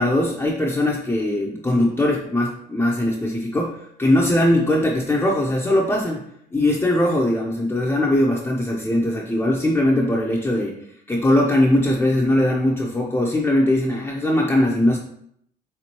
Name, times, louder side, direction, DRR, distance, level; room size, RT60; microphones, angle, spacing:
voice 1, 0.0-6.2 6.5-10.8 11.1-15.0, left 1 dB, 10° left, -2 dB, 0.5 m, -20 dB
4.4 x 3.6 x 2.9 m, 0.72 s
cardioid pair, 110°, 17 cm